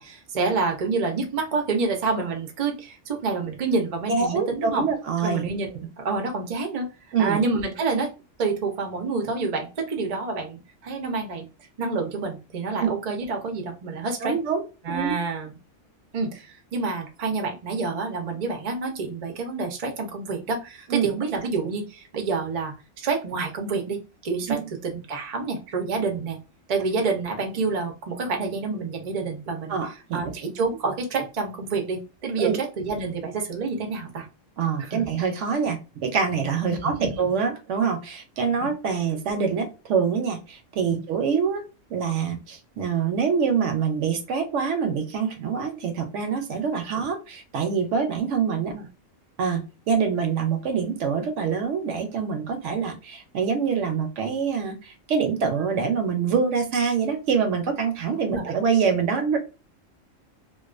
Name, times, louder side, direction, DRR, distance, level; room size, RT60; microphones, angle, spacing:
voice 1, 0.0-4.8 5.2-5.7 6.0-6.9 7.2-8.1 8.4-11.5 11.8-14.4 14.8-15.5 16.1-26.4 26.7-29.7 30.1-34.2 34.8-35.0 36.7-37.1 40.9-41.0 46.9-47.0 48.6-48.8 58.3-58.5, right 4 dB, 45° right, 3 dB, 0.5 m, -28 dB
voice 2, 4.1-5.4 7.1-7.4 12.8-12.9 14.2-15.1 20.9-21.1 24.5-24.7 29.7-30.2 32.4-32.6 34.6-48.7 49.4-59.4, right 6 dB, 75° right, 5 dB, 0.9 m, -25 dB
2.4 x 2.3 x 2.4 m, 0.31 s
omnidirectional pair, 1.3 m